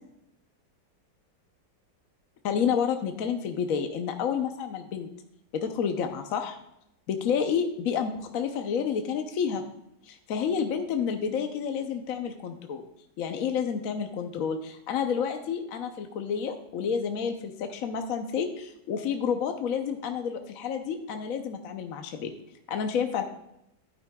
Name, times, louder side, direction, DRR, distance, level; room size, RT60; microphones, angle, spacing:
voice 1, 2.4-5.1 5.5-6.6 7.1-9.6 10.1-12.8 13.2-22.3 22.7-23.2, left 7 dB, 60° left, 6 dB, 0.9 m, -29 dB
11.5 x 9.2 x 2.3 m, 0.80 s
omnidirectional pair, 2.0 m